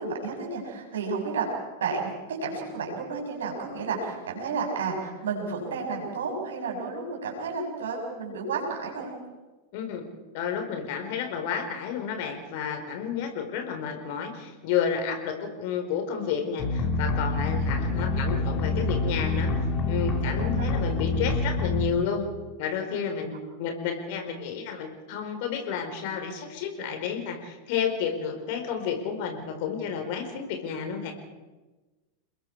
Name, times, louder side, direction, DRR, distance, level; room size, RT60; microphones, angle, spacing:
voice 1, 0.0-1.5 1.8-9.1 20.2-20.7, right 4 dB, 65° right, 1 dB, 6.7 m, -32 dB
voice 2, 9.7-10.0 10.3-19.5 19.9-22.3 22.6-31.1, left 7 dB, 50° left, 5 dB, 4.6 m, -31 dB
sound 1, 16.6-21.9, left 2 dB, 30° left, 3.1 m, -26 dB
30.0 x 21.0 x 4.9 m, 1.2 s
figure-of-eight pair, 90°, 0 cm